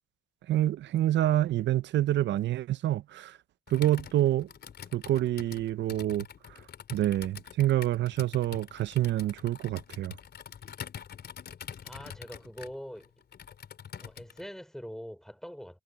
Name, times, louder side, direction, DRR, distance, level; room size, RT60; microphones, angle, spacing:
voice 1, 0.5-3.4 3.7-4.5 4.9-6.3 6.9-10.1, right 13 dB, 65° right, 0.6 m, -27 dB
Computer keyboard, 3.7-14.4, left 8 dB, 55° left, 4.3 m, -45 dB
voice 2, 11.8-13.1 14.0-15.8, equal, ahead, 4.4 m, -43 dB
cardioid pair, 90°, 20 cm